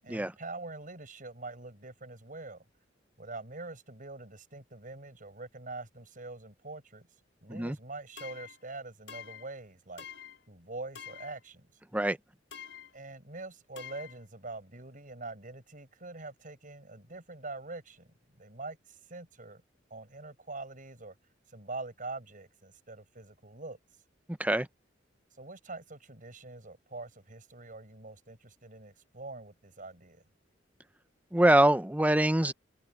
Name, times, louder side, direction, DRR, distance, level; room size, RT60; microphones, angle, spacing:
voice 1, 0.0-2.6 3.2-7.1 7.4-10.1 10.5-11.7 12.9-18.1 18.3-19.6 19.9-21.1 21.5-23.8 25.4-30.2, right 3 dB, 45° right, 6.5 m, -44 dB
sound 1, 8.2-8.6 9.1-9.5 10.0-10.4 10.9-11.4 12.5-13.0 13.8-14.2, left 8 dB, 75° left, 5.5 m, -46 dB
voice 2, 31.3-32.5, right 1 dB, 10° right, 0.8 m, -24 dB
head